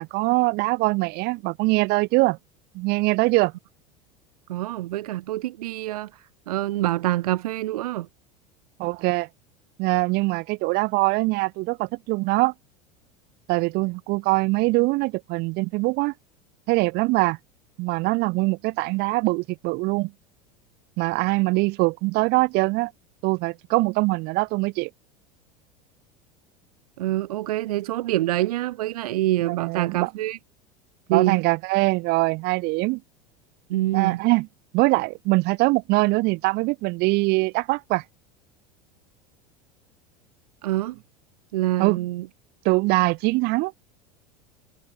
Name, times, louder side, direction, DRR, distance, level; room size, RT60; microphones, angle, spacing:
voice 1, 0.0-2.4 2.7-3.5 8.8-9.3 9.8-12.5 13.5-16.1 16.7-17.4 17.8-20.1 21.0-22.9 23.2-24.9 29.5-30.1 31.1-33.0 33.9-34.5 34.7-38.0 41.8-42.0 42.6-43.7, right 24 dB, 55° right, 4.4 m, -23 dB
voice 2, 4.5-6.1 6.5-8.1 27.0-30.4 31.1-31.4 33.7-34.2 40.6-41.0 41.5-42.3, right 16 dB, 70° right, 4.0 m, -25 dB
hypercardioid pair, 80°, 20 cm